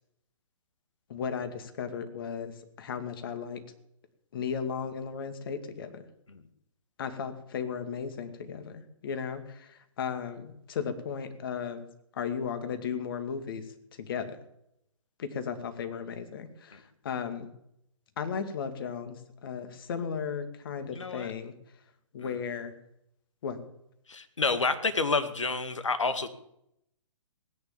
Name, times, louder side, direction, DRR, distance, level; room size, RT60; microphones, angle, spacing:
voice 1, 1.1-3.6 4.3-6.0 7.0-11.8 12.1-13.6 14.0-14.4 15.2-17.5 18.2-19.1 19.4-21.5 22.1-22.7 23.4-23.6, left 6 dB, 45° left, 8 dB, 2.4 m, -35 dB
voice 2, 20.9-21.3 22.2-22.4 24.1-26.3, left 4 dB, 65° left, 11 dB, 2.0 m, -29 dB
18.5 x 10.0 x 7.3 m, 0.77 s
figure-of-eight pair, 125°, 17 cm